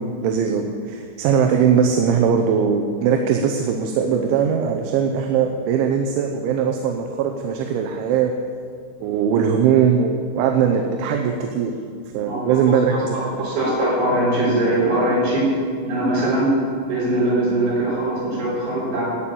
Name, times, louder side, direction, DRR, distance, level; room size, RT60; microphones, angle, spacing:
voice 1, 0.0-8.3 9.0-11.8 12.1-13.5, right 7 dB, 80° right, 3 dB, 3.2 m, -20 dB
voice 2, 12.3-12.6 12.9-15.5 15.8-16.5 16.9-19.1, right 1 dB, 60° right, -11 dB, 6.0 m, -21 dB
14.0 x 9.1 x 8.7 m, 2.1 s
omnidirectional pair, 5.6 m